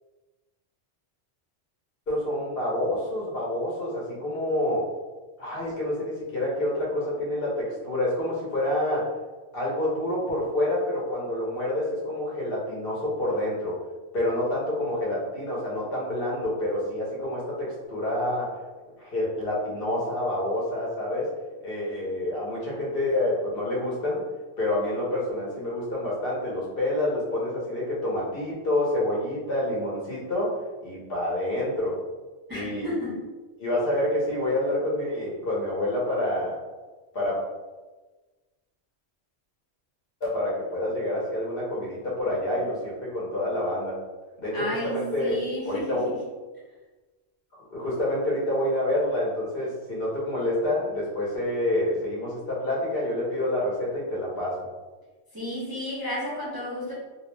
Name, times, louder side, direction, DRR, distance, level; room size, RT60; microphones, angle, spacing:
voice 1, 2.1-4.9 5.4-9.1 9.5-13.7 14.1-18.5 19.0-21.3 21.6-24.2 24.6-31.9 32.5-32.9 33.6-36.6 37.1-37.4 40.2-44.0 44.4-45.4 45.6-46.1 47.7-54.6, left 1 dB, 60° left, -5 dB, 0.9 m, -28 dB
voice 2, 32.5-33.2 44.5-46.2 55.3-56.9, left 1 dB, 25° right, -8 dB, 0.6 m, -32 dB
2.5 x 2.0 x 3.0 m, 1.2 s
omnidirectional pair, 1.2 m